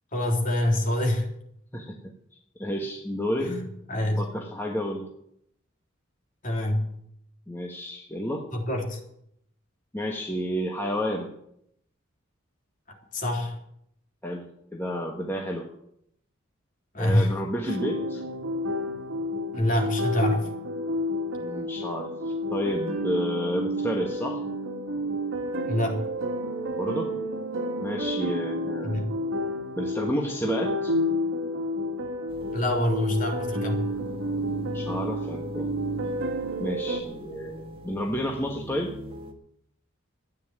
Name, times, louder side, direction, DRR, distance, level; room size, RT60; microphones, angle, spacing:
voice 1, 0.1-1.3 3.4-4.2 6.4-6.9 8.5-9.0 13.1-13.6 16.9-17.3 19.5-20.5 25.6-26.0 28.8-29.1 32.5-33.9, left 1 dB, 40° left, 1 dB, 3.4 m, -26 dB
voice 2, 1.7-2.1 2.5-3.6 4.2-5.1 7.5-8.5 9.9-11.3 14.2-14.4 14.7-15.7 17.0-18.2 21.4-24.4 26.8-27.1 27.8-29.0 29.8-30.9 34.4-35.7 36.6-38.9, equal, 10° left, 0 dB, 1.4 m, -31 dB
sound 1, 17.7-37.0, equal, 80° right, 2.1 m, -30 dB
sound 2, 32.3-39.3, equal, 25° right, 2.0 m, -39 dB
13.5 x 9.8 x 9.0 m, 0.75 s
head